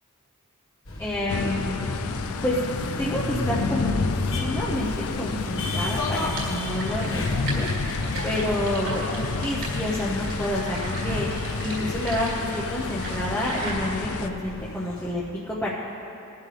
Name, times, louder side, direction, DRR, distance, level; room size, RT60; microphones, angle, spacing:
sound 1, 0.9-15.1, left 1 dB, 60° left, 1.5 m, -35 dB
voice 1, 1.0-1.9 2.4-2.6 3.0-4.9 5.2-7.7 8.2-11.3 11.6-15.7, left 1 dB, 10° left, -7 dB, 1.0 m, -29 dB
sound 2, 1.3-14.3, left 4 dB, 80° left, 0.5 m, -30 dB
sound 3, 6.4-13.7, right 2 dB, 65° right, 3.6 m, -37 dB
20.5 x 11.0 x 3.4 m, 3.0 s
head